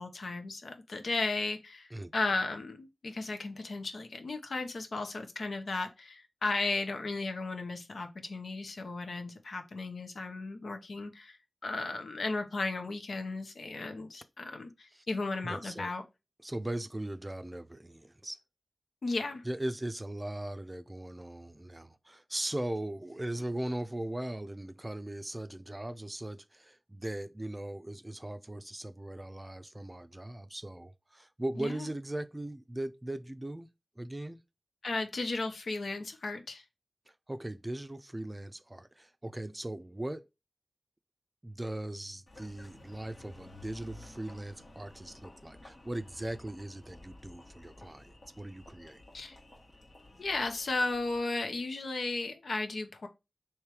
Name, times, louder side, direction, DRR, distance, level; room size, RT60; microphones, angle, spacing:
voice 1, 0.0-11.4 11.6-16.0 19.0-19.4 31.5-31.9 34.8-36.6 49.1-49.4 50.2-53.1, left 3 dB, 85° left, 0.7 m, -35 dB
voice 2, 15.4-15.9 16.4-18.4 19.4-33.7 34.0-34.4 37.3-40.2 41.4-49.0, right 1 dB, 25° right, 0.4 m, -39 dB
Engine, 42.3-51.2, left 1 dB, 65° left, 1.3 m, -53 dB
3.3 x 3.1 x 4.7 m
cardioid pair, 40°, 0 cm